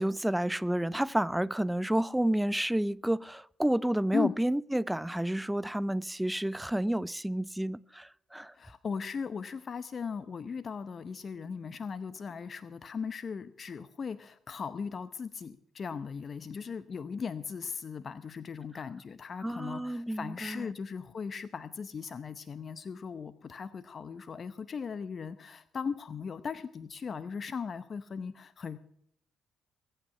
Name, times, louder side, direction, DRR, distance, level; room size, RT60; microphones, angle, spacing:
voice 1, 0.0-8.5 19.4-20.7, right 1 dB, 5° right, 0.5 m, -30 dB
voice 2, 8.5-28.8, left 6 dB, 50° left, 0.8 m, -38 dB
21.0 x 8.9 x 5.5 m
supercardioid pair, 55°, 0 cm